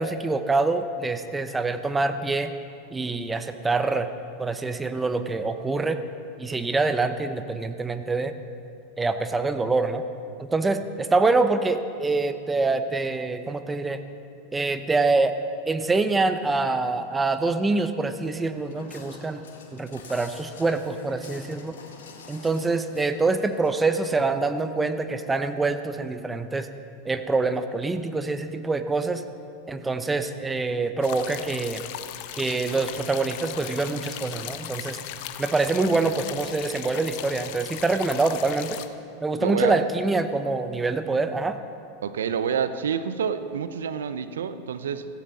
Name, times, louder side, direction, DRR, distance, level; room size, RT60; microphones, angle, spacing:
voice 1, 0.0-2.5 2.9-4.1 4.4-6.0 6.4-8.4 9.0-10.0 10.4-14.0 14.5-15.4 15.7-19.5 19.7-21.8 22.3-26.7 27.0-29.2 29.7-31.8 32.3-35.0 35.4-38.8 39.2-41.6, right 3 dB, 15° right, 9 dB, 0.9 m, -25 dB
Walk footsteps, 18.1-23.9, left 5 dB, 75° left, 2.0 m, -48 dB
sound 1, 31.0-38.9, left 12 dB, 60° left, 0.8 m, -37 dB
voice 2, 39.4-39.8 42.0-45.1, right 7 dB, 80° right, 11 dB, 0.8 m, -28 dB
16.0 x 15.5 x 4.2 m, 2.5 s
hypercardioid pair, 95°, 0 cm